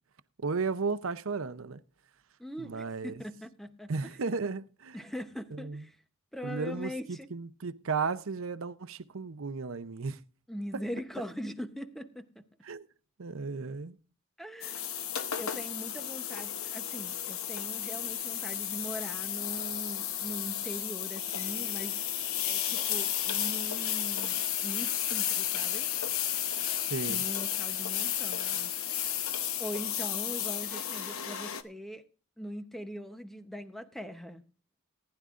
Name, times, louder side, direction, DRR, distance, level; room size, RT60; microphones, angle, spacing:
voice 1, 0.4-1.8 2.6-3.2 3.9-5.0 5.5-5.8 6.4-10.2 12.6-12.9 13.2-14.0 26.9-27.2, right 4 dB, 65° right, 0.7 m, -34 dB
voice 2, 2.4-4.1 4.9-6.0 6.3-7.3 10.5-12.4 14.4-14.8 15.4-22.0 22.4-25.9 27.1-28.7 29.0-29.1 29.6-32.0 32.4-34.4, equal, ahead, 0.8 m, -41 dB
sound 1, 14.6-31.6, left 10 dB, 70° left, 0.9 m, -33 dB
19.0 x 10.5 x 2.5 m
head